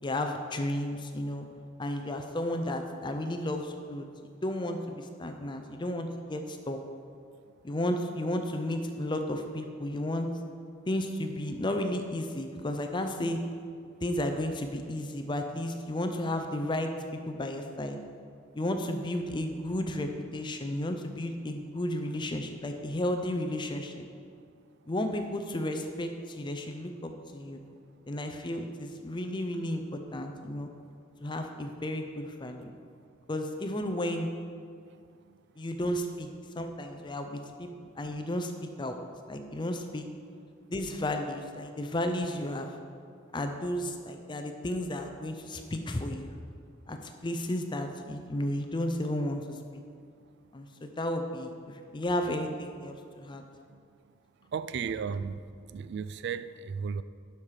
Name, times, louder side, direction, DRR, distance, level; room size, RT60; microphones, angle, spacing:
voice 1, 0.0-1.5 1.8-6.8 7.6-10.3 10.9-13.4 14.0-18.0 18.5-24.1 24.9-27.6 28.1-30.7 31.2-32.7 33.3-34.3 35.6-36.3 36.6-37.7 38.0-38.5 38.8-39.0 39.3-40.1 40.7-42.7 43.3-46.3 46.9-49.8 50.5-53.4, left 1 dB, 25° left, 0.5 m, -33 dB
voice 2, 34.9-35.4 53.7-53.8 54.5-55.4 55.7-57.0, right 6 dB, 60° right, 0.3 m, -35 dB
11.5 x 5.7 x 4.8 m
head